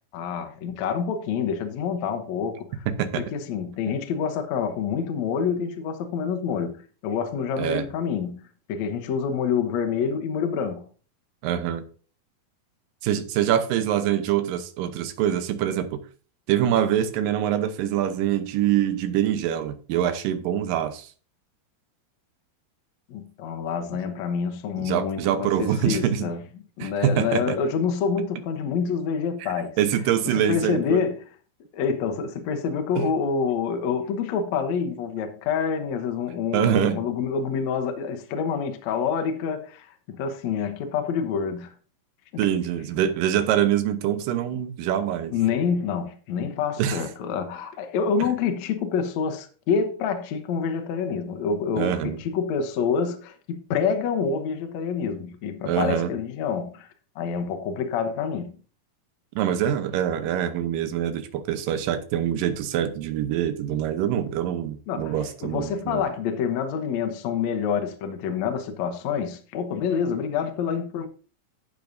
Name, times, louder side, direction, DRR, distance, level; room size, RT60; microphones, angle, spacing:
voice 1, 0.1-2.8 3.2-8.4 8.7-10.8 23.1-26.4 26.8-29.7 30.2-31.2 31.7-41.7 42.3-42.4 45.3-56.9 57.1-58.5 64.9-71.1, left 6 dB, 70° left, 1.7 m, -27 dB
voice 2, 2.9-3.2 7.6-7.8 11.4-11.8 13.0-16.0 16.5-21.1 24.8-26.3 26.8-27.6 29.4-31.1 33.0-33.1 36.5-37.0 42.4-45.3 46.8-47.0 51.8-52.2 55.7-56.1 59.4-66.0, right 10 dB, 75° right, 2.4 m, -25 dB
12.0 x 8.3 x 2.7 m
omnidirectional pair, 4.4 m